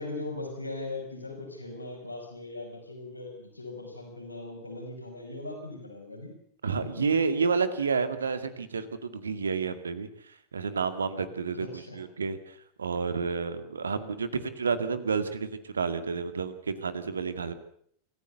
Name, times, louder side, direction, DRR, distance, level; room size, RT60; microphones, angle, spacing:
voice 1, 0.0-6.4 6.8-6.9 11.6-12.0, left 2 dB, 85° left, 2 dB, 5.5 m, -39 dB
voice 2, 6.6-10.1 10.5-17.5, right 5 dB, 70° right, 12 dB, 2.0 m, -30 dB
26.0 x 15.0 x 8.0 m, 0.64 s
figure-of-eight pair, 90°, 0 cm